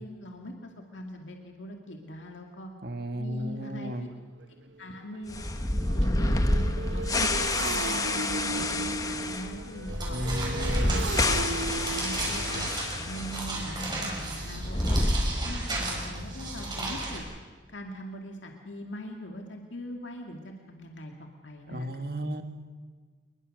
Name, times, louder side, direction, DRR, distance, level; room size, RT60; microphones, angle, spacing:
voice 1, 0.0-2.7 3.2-4.1 4.8-5.4 6.1-10.2 10.7-12.7 13.0-15.1 15.4-17.3 17.7-21.9 22.2-22.3, equal, 85° left, 2 dB, 2.3 m, -41 dB
voice 2, 2.8-4.1 10.1-11.0 21.7-22.4, equal, 55° right, 7 dB, 1.8 m, -34 dB
Motorcycle, 3.4-3.5 4.0-4.1 4.4-16.0, right 3 dB, 80° right, 0.9 m, -38 dB
sound 1, 5.3-13.5 13.7-13.8 14.5-15.8, left 2 dB, 20° left, 1.1 m, -28 dB
sound 2, 9.9-17.2, right 2 dB, 25° right, 5.6 m, -34 dB
28.0 x 21.5 x 6.6 m, 1.5 s
head